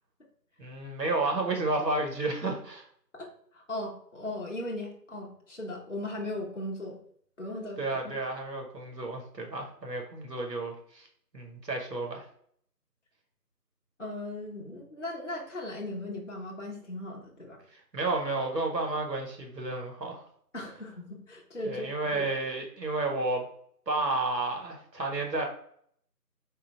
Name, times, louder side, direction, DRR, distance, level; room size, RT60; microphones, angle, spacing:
voice 1, 0.6-2.8 7.8-11.1 11.3-12.3 17.7-20.2 21.6-23.4 23.9-25.5, right 2 dB, 85° right, 2 dB, 1.3 m, -31 dB
voice 2, 3.1-7.0 7.4-7.8 8.2-8.3 14.0-17.6 20.5-21.9 22.1-22.3, left 1 dB, 50° left, -1 dB, 0.6 m, -38 dB
3.7 x 2.0 x 4.3 m, 0.62 s
figure-of-eight pair, 175°, 49 cm